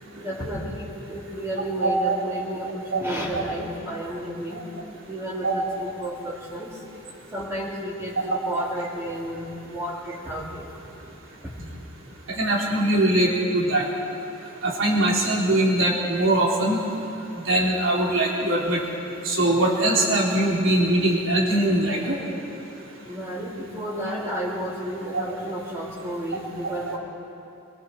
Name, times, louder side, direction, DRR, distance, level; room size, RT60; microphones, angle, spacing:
voice 1, 0.2-4.6 5.1-6.7 7.3-10.7 11.4-11.5 23.1-27.0, right 1 dB, 15° right, -9 dB, 3.7 m, -32 dB
voice 2, 12.4-13.8 14.6-16.8 17.5-18.8 19.2-22.2, right 1 dB, 70° right, -3 dB, 4.2 m, -21 dB
27.0 x 24.0 x 4.7 m, 2.8 s
head